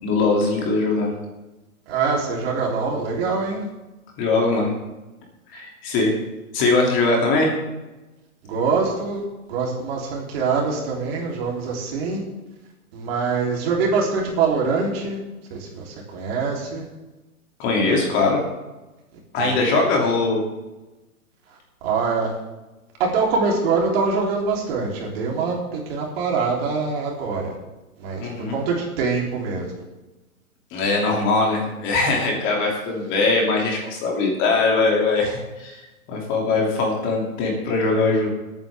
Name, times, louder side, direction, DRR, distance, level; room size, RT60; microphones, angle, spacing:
voice 1, 0.0-1.1 4.2-4.7 5.5-6.1 6.5-7.5 17.6-18.4 19.3-20.4 28.2-28.6 30.7-35.8 36.1-38.3, left 3 dB, 25° left, -1 dB, 2.8 m, -21 dB
voice 2, 1.9-3.7 8.5-9.2 9.5-12.2 12.9-15.2 15.5-16.9 19.4-19.6 21.8-22.3 23.0-27.5 28.0-28.2 28.5-29.6, right 4 dB, 40° right, -1 dB, 3.4 m, -24 dB
20.0 x 9.1 x 3.5 m, 1.1 s
hypercardioid pair, 150°, 44 cm